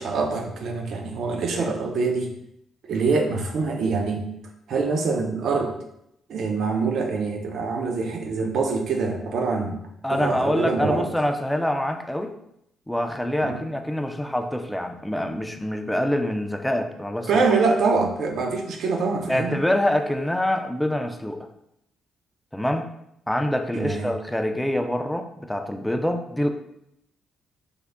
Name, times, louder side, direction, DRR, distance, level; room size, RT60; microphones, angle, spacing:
voice 1, 0.0-2.3 2.9-4.3 4.7-5.7 6.3-9.8 10.1-11.1 13.4-13.6 17.3-19.5 23.7-24.1, right 4 dB, 70° right, 3 dB, 0.5 m, -24 dB
voice 2, 10.0-12.3 12.9-17.4 19.3-21.5 22.5-22.9 23.3-26.5, left 1 dB, 5° left, 5 dB, 0.4 m, -25 dB
3.6 x 2.1 x 3.4 m, 0.78 s
cardioid pair, 90°, 0 cm